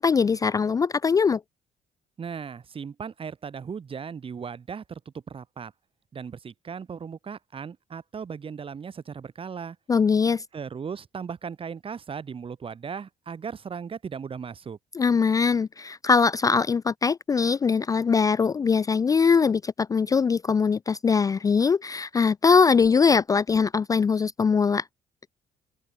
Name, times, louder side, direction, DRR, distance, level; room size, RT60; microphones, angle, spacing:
voice 1, 0.0-1.4 9.9-10.4 14.9-24.8, left 5 dB, 25° left, 0.3 m, -22 dB
voice 2, 2.2-5.0 5.3-5.7 6.1-9.8 10.5-14.8, right 6 dB, 40° right, 2.4 m, -37 dB
open air
cardioid pair, 90°, 14 cm